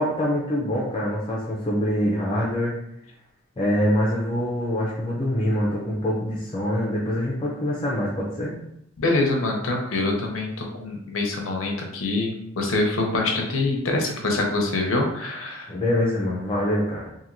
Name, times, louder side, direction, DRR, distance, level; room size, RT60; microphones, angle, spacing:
voice 1, 0.0-2.8 3.6-8.6 15.7-17.1, left 1 dB, 25° left, -5 dB, 0.5 m, -24 dB
voice 2, 9.0-15.7, left 2 dB, 85° left, 1 dB, 0.6 m, -25 dB
2.9 x 2.7 x 2.6 m, 0.76 s
head